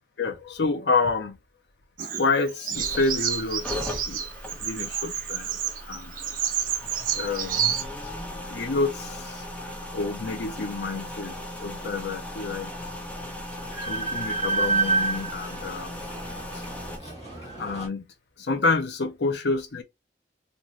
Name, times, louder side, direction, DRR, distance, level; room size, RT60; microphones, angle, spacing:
voice 1, 0.2-1.4 2.2-4.2 4.6-5.5 5.9-6.1 7.1-7.9 8.3-12.7 13.9-16.0 17.4-18.1 18.4-19.8, left 3 dB, 75° left, 0.6 m, -28 dB
Bird vocalization bird call bird song, 2.0-7.8, right 9 dB, 50° right, 0.6 m, -30 dB
sound 1, 2.7-17.0, left 1 dB, 10° left, 0.5 m, -38 dB
Train, 13.3-17.9, right 3 dB, 35° left, 1.1 m, -29 dB
2.6 x 2.5 x 2.9 m
head